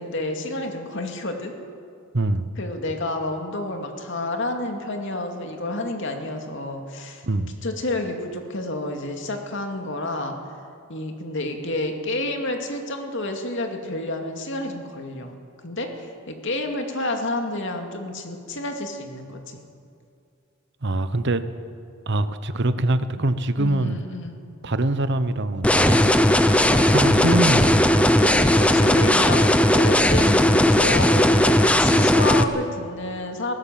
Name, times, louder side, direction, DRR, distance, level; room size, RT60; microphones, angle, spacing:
voice 1, 0.0-1.5 2.6-7.3 7.6-10.4 10.9-15.4 15.6-19.6 23.6-24.4 28.2-33.6, left 2 dB, 60° left, 4 dB, 2.4 m, -30 dB
voice 2, 2.1-2.5 7.2-7.5 20.8-21.4 22.1-24.0 24.6-26.4 26.7-28.0, right 2 dB, 55° right, 12 dB, 1.0 m, -24 dB
sound 1, 25.6-32.4, left 1 dB, 5° left, 0.7 m, -17 dB
19.5 x 18.0 x 7.6 m, 2.5 s
head